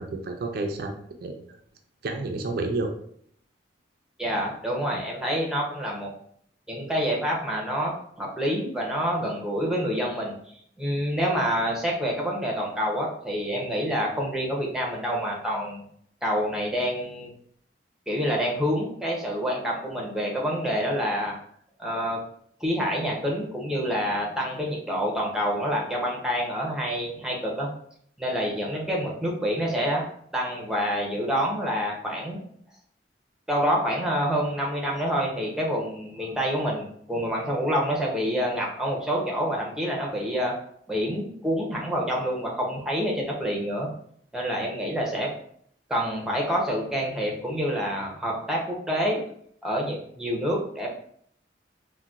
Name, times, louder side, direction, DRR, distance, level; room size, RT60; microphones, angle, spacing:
voice 1, 0.0-1.4 2.0-2.9, right 2 dB, 60° right, 4 dB, 0.4 m, -30 dB
voice 2, 4.2-6.1 6.7-10.3 10.8-15.8 16.2-17.3 18.1-21.4 21.8-22.2 22.6-27.7 28.2-30.0 30.3-32.4 33.5-40.5 40.9-43.9 44.3-45.3 45.9-49.2 49.6-50.9, equal, 5° right, -2 dB, 0.6 m, -27 dB
3.8 x 2.1 x 2.4 m, 0.64 s
head